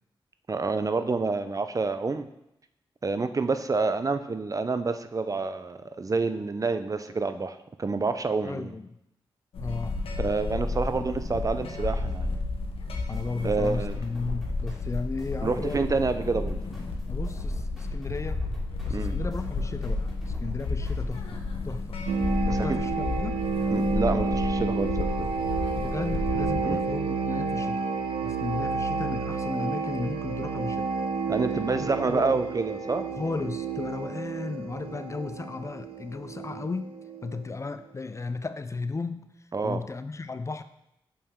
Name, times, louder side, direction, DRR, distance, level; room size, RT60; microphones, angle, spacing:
voice 1, 0.5-2.3 3.0-8.7 10.2-12.3 13.4-14.0 15.4-16.6 18.9-19.1 22.5-22.8 23.7-25.3 26.6-26.8 31.3-33.1 39.5-39.8, right 4 dB, 35° right, 10 dB, 0.5 m, -28 dB
voice 2, 8.4-8.9 9.6-10.0 10.8-11.1 13.1-15.8 17.1-18.4 18.9-22.0 22.4-23.4 25.7-27.9 28.2-30.9 31.7-32.4 33.2-36.9 37.2-39.3 39.6-40.6, left 3 dB, 30° left, 11 dB, 0.4 m, -35 dB
sound 1, 9.5-26.9, left 3 dB, 80° left, 0.9 m, -32 dB
sound 2, 13.1-21.3, equal, 5° right, 2.7 m, -53 dB
sound 3, 22.1-37.5, right 4 dB, 85° right, 0.6 m, -30 dB
6.5 x 5.5 x 3.6 m, 0.83 s
cardioid pair, 50°, 9 cm